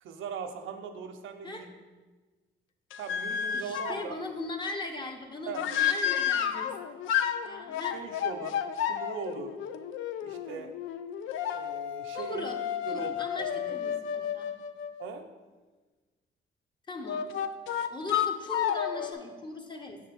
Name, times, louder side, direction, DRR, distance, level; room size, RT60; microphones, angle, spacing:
voice 1, 0.0-1.7 3.0-4.2 5.5-5.7 7.9-8.6 8.8-9.6 10.2-10.7 11.5-12.5 12.9-13.1 15.0-15.3, right 6 dB, 80° right, 6 dB, 0.6 m, -39 dB
sound 1, 2.9-4.1 5.5-15.1 17.1-19.1, left 9 dB, 80° left, 0.4 m, -31 dB
voice 2, 3.5-6.7 7.4-8.0 12.1-12.6 12.9-14.5 16.9-17.3 17.9-20.0, left 2 dB, 25° left, 3 dB, 1.0 m, -39 dB
6.2 x 3.6 x 5.9 m, 1.3 s
cardioid pair, 90°, 20 cm